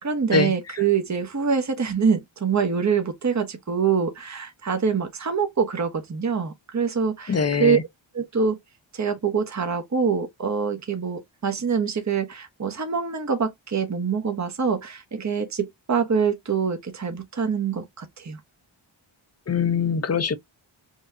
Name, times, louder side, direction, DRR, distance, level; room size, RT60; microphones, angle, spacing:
voice 1, 0.0-7.8 8.1-8.6 8.9-18.4, right 6 dB, 35° right, 1.0 m, -25 dB
voice 2, 7.3-7.8 19.5-20.4, left 5 dB, 30° left, 0.7 m, -22 dB
5.7 x 2.3 x 2.6 m
cardioid pair, 50°, 48 cm